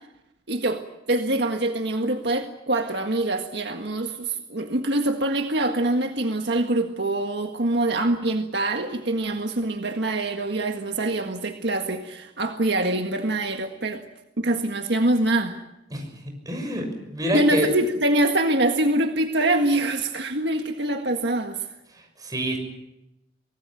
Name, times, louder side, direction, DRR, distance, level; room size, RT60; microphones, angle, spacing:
voice 1, 0.5-14.0 14.4-15.6 17.3-21.6, right 1 dB, 65° right, 5 dB, 1.7 m, -24 dB
voice 2, 15.9-17.7 21.9-22.6, equal, 20° right, 3 dB, 6.4 m, -28 dB
24.5 x 18.5 x 9.1 m, 0.90 s
head